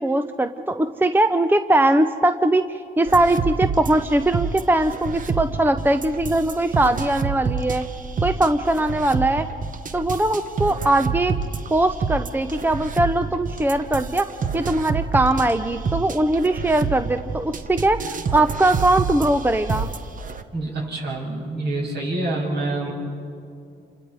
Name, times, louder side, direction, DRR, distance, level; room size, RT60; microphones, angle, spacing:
voice 1, 0.0-7.8 8.2-9.5 9.9-11.3 11.7-14.3 14.5-19.9, right 1 dB, 10° right, 9 dB, 0.7 m, -20 dB
sound 1, 3.1-20.4, right 5 dB, 40° right, 1.1 m, -28 dB
voice 2, 20.5-22.9, right 2 dB, 55° right, -2 dB, 6.9 m, -26 dB
28.5 x 26.5 x 4.8 m, 2.5 s
cardioid pair, 90°, 20 cm